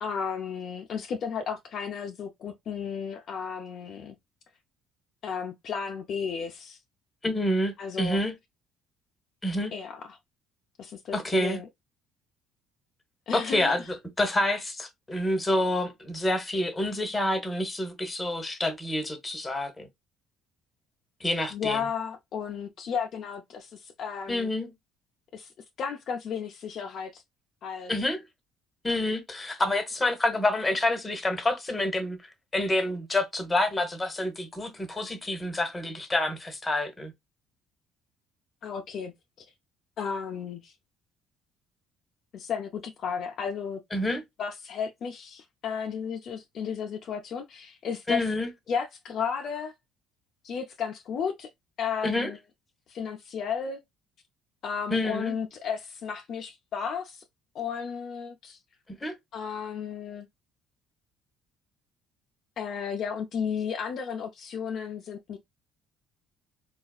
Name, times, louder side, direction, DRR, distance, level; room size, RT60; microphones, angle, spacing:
voice 1, 0.0-4.2 5.2-6.8 7.8-8.2 9.7-10.0 10.8-11.7 13.3-13.8 21.5-24.5 25.3-25.5 25.8-27.2 27.6-27.9 38.6-39.1 39.4-39.5 40.0-40.7 42.3-43.8 44.4-48.3 48.7-49.7 50.4-51.5 51.8-52.4 52.9-53.8 54.6-57.2 57.5-58.6 59.3-60.3 62.6-65.4, left 6 dB, 55° left, 0.5 m, -33 dB
voice 2, 7.2-8.3 9.4-9.7 11.1-11.6 13.3-19.9 21.2-21.8 24.3-24.7 27.9-28.2 28.8-37.1 43.9-44.2 48.1-48.5 52.0-52.3 54.9-55.3 59.0-59.1, left 1 dB, 15° left, 1.0 m, -28 dB
4.0 x 2.3 x 2.3 m
supercardioid pair, 95°, 0 cm